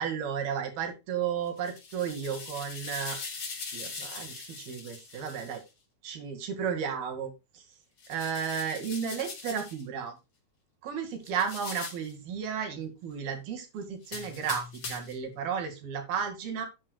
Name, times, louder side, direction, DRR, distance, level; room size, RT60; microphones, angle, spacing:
voice 1, 0.0-3.2 3.7-5.6 6.0-7.6 8.1-10.2 10.8-16.7, right 7 dB, 90° right, 4 dB, 4.1 m, -33 dB
sound 1, 1.5-5.6 8.0-9.8 11.3-12.1 14.0-15.2, left 4 dB, 50° left, 4.3 m, -41 dB
11.0 x 10.0 x 2.3 m, 0.25 s
omnidirectional pair, 4.2 m